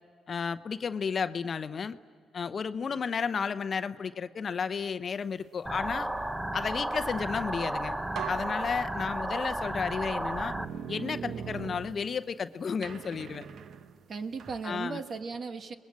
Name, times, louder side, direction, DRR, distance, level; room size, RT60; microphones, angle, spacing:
voice 1, 0.3-2.0 2.3-6.1 6.5-8.0 8.3-10.5 10.9-13.4 14.6-15.0, left 6 dB, 45° left, 12 dB, 0.8 m, -32 dB
sound 1, 5.7-10.7, right 1 dB, 10° right, 0.9 m, -33 dB
sound 2, 7.6-7.7 8.1-9.4 10.1-12.4 12.8-14.6, right 7 dB, 65° right, 1.0 m, -41 dB
voice 2, 14.1-15.8, right 4 dB, 50° right, 8 dB, 1.5 m, -37 dB
29.5 x 21.0 x 7.4 m, 2.2 s
cardioid pair, 90°, 0 cm